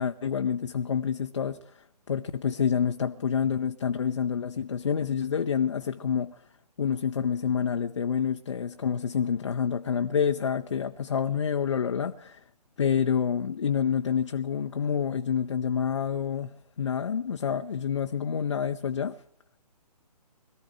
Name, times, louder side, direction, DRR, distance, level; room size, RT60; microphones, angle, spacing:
voice 1, 0.0-1.7 2.1-6.3 6.8-12.4 12.8-19.2, left 7 dB, 45° left, 0.6 m, -28 dB
21.5 x 14.0 x 4.7 m
figure-of-eight pair, 135°, 21 cm